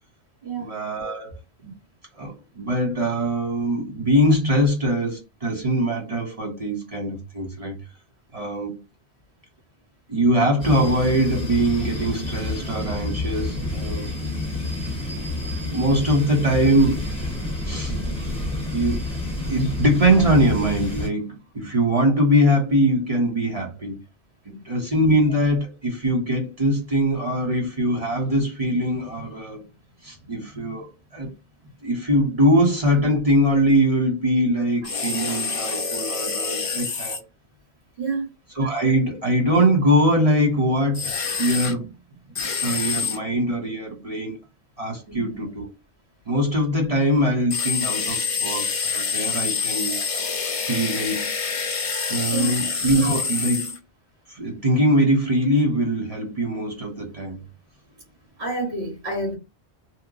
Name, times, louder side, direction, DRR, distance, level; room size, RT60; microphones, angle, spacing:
voice 1, 0.6-1.4 1.6-1.7 2.2-7.8 8.3-8.8 10.1-14.1 15.1-17.0 17.7-18.0 18.7-19.0 19.5-24.0 24.5-29.6 30.0-31.3 31.8-37.2 38.6-41.1 41.4-41.9 42.6-44.4 44.8-45.7 46.3-50.0 50.7-51.3 52.1-53.8 54.3-57.4, equal, 35° right, 1.0 m, -22 dB
sound 1, 10.6-21.1, left 2 dB, 5° left, 1.1 m, -29 dB
voice 2, 17.9-18.2 24.5-24.6 35.3-35.4 38.0-38.3 45.1-45.4 52.2-52.5 58.4-59.4, right 3 dB, 70° right, 1.6 m, -29 dB
sound 2, 34.8-37.2 40.9-41.7 42.3-43.2 47.5-53.8, left 5 dB, 40° left, 0.6 m, -27 dB
2.9 x 2.2 x 3.7 m
omnidirectional pair, 1.1 m